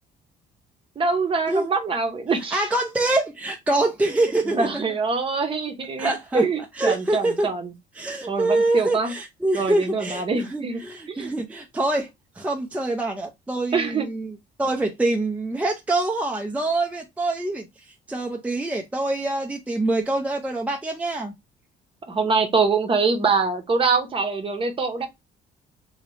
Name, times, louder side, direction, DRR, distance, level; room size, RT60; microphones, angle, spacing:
voice 1, 1.0-2.7 4.4-7.7 8.3-9.1 9.5-10.8 11.1-11.3 13.7-14.1 22.1-25.1, right 4 dB, 30° right, 0.9 m, -24 dB
voice 2, 2.5-4.7 6.0-6.4 6.7-7.5 8.0-12.1 12.4-17.6 18.1-21.3, right 2 dB, 10° right, 0.5 m, -25 dB
2.9 x 2.8 x 3.1 m
cardioid pair, 110°, 17 cm